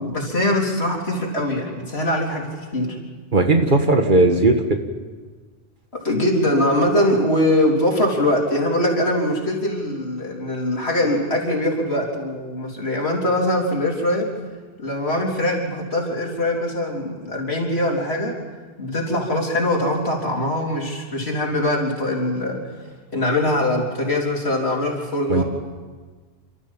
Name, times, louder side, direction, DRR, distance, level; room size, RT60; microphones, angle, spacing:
voice 1, 0.0-3.0 6.0-14.3 14.8-18.3 18.8-22.6 23.1-25.4, left 1 dB, 70° left, -1 dB, 4.1 m, -22 dB
voice 2, 3.3-4.8 25.3-25.4, right 2 dB, 50° right, 5 dB, 1.7 m, -17 dB
30.0 x 13.5 x 7.5 m, 1.4 s
omnidirectional pair, 1.1 m